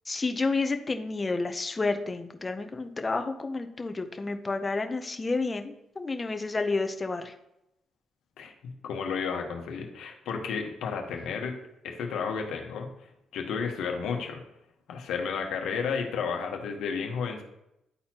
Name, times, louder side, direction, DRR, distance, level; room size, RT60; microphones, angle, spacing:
voice 1, 0.1-7.3, left 3 dB, 25° left, 7 dB, 0.7 m, -30 dB
voice 2, 8.4-11.5 11.8-12.9 13.3-14.4 14.9-17.4, left 6 dB, 80° left, 3 dB, 1.1 m, -32 dB
10.5 x 4.2 x 2.9 m, 0.83 s
cardioid pair, 90°, 0 cm